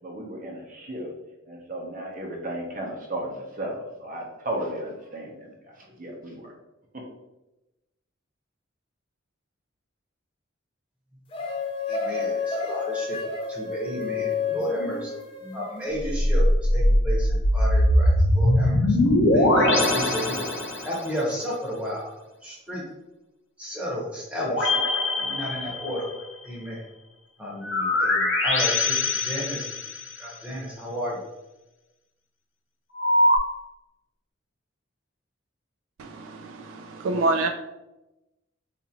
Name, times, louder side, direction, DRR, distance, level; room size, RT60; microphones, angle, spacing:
voice 1, 0.0-1.1 1.5-6.5 6.9-7.0, right 1 dB, 40° right, -1 dB, 0.7 m, -35 dB
sound 1, 11.3-15.8, left 5 dB, 25° left, 0.4 m, -30 dB
voice 2, 11.9-13.2 13.5-15.1 15.4-16.4 16.7-20.5 20.8-22.1 22.4-22.8 23.6-24.8 25.2-26.8 27.4-29.7 30.2-31.2, equal, 5° right, -5 dB, 0.9 m, -33 dB
sound 2, 16.0-21.1 24.4-26.2 27.6-30.2 32.9-33.4, left 1 dB, 65° left, 0.7 m, -22 dB
voice 3, 36.0-37.5, right 2 dB, 80° right, 6 dB, 0.3 m, -27 dB
4.1 x 2.5 x 2.8 m, 0.99 s
head